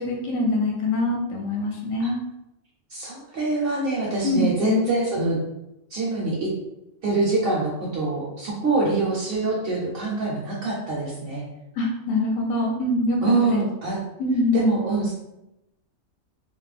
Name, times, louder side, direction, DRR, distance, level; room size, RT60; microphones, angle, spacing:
voice 1, 0.0-2.2 4.2-4.8 11.7-13.6 14.2-14.7, left 2 dB, 70° left, 0 dB, 0.9 m, -24 dB
voice 2, 2.9-5.4 5.9-6.5 7.0-11.4 13.2-14.0 14.5-15.1, right 3 dB, 55° right, -4 dB, 0.7 m, -24 dB
2.4 x 2.1 x 3.2 m, 0.89 s
omnidirectional pair, 1.4 m